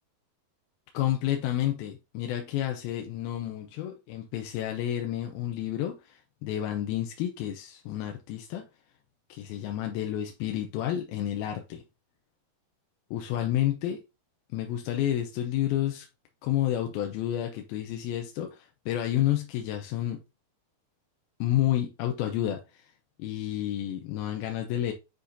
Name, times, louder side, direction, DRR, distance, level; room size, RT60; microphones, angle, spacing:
voice 1, 0.9-8.6 9.3-11.8 13.1-14.0 14.5-16.1 16.4-20.2 21.4-22.9 23.2-24.9, left 12 dB, 80° left, 2.4 m, -30 dB
7.8 x 4.9 x 2.7 m
omnidirectional pair, 4.6 m